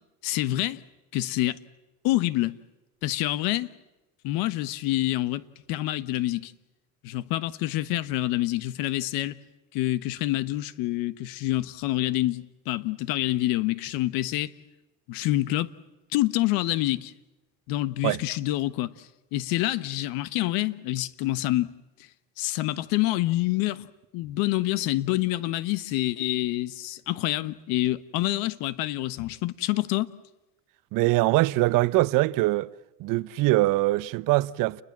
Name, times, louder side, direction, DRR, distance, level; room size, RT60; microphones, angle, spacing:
voice 1, 0.2-0.8 1.1-1.6 2.0-2.6 3.0-3.7 4.2-5.4 5.7-6.5 7.0-9.4 9.7-14.5 15.1-15.7 16.1-17.1 17.7-21.7 22.4-23.9 24.1-30.1, left 16 dB, 80° left, 1.3 m, -27 dB
voice 2, 30.9-32.7 33.0-34.8, right 19 dB, 65° right, 0.9 m, -23 dB
29.5 x 21.5 x 7.5 m
cardioid pair, 125°, 35 cm